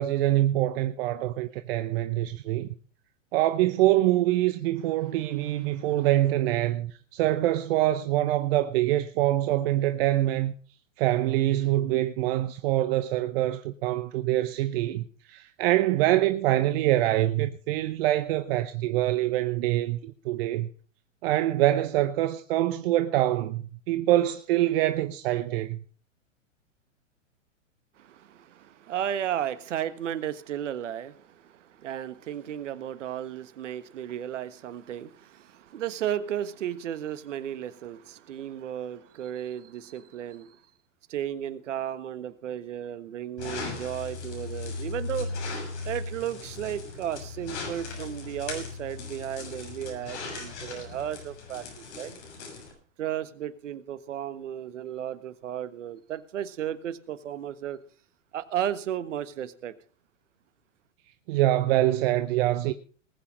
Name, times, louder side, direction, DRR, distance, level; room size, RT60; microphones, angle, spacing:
voice 1, 0.0-2.7 3.3-10.5 11.0-20.7 21.2-25.8 61.3-62.7, right 15 dB, 50° right, 0.9 m, -25 dB
voice 2, 28.0-40.6 41.1-45.3 45.8-52.1 53.0-57.8 58.3-59.7, right 10 dB, 65° right, 1.5 m, -34 dB
sound 1, 43.4-52.7, left 3 dB, 60° left, 6.8 m, -37 dB
19.5 x 8.6 x 5.3 m
hypercardioid pair, 110°, 39 cm